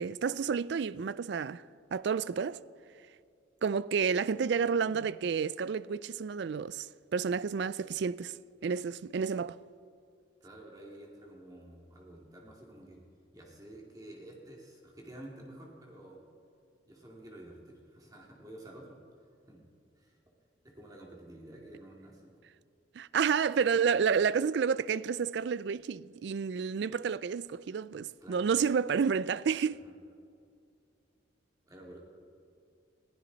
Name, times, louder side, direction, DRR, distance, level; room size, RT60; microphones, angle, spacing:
voice 1, 0.0-1.6 1.9-2.6 3.6-8.4 8.6-9.6 23.0-29.8, right 6 dB, 60° right, 0.3 m, -30 dB
voice 2, 10.4-13.0 13.3-16.2 16.9-19.0 19.5-19.6 20.0-20.2 20.6-22.3 28.2-28.5 29.8-30.0 31.6-32.0, right 1 dB, 20° right, 2.4 m, -50 dB
21.0 x 15.0 x 4.0 m
head